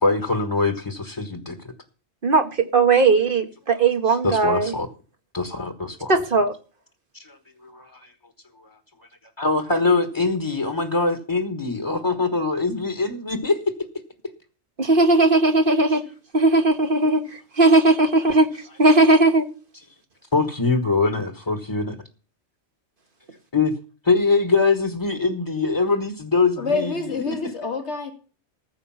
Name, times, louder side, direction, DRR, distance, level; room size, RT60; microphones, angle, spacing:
voice 1, 0.0-1.7 4.1-4.9 5.3-6.2 7.1-7.4 7.6-8.1 9.4-13.6 20.3-21.9 23.5-23.7 24.0-27.3, left 3 dB, 25° left, 8 dB, 1.4 m, -23 dB
voice 2, 2.2-4.7 6.1-6.6 14.8-16.0 16.3-17.2 17.6-18.5 18.8-19.5, right 3 dB, 50° right, 7 dB, 1.7 m, -17 dB
voice 3, 26.6-28.1, left 4 dB, 85° left, 4 dB, 2.9 m, -27 dB
15.0 x 6.8 x 5.8 m, 0.37 s
omnidirectional pair, 1.1 m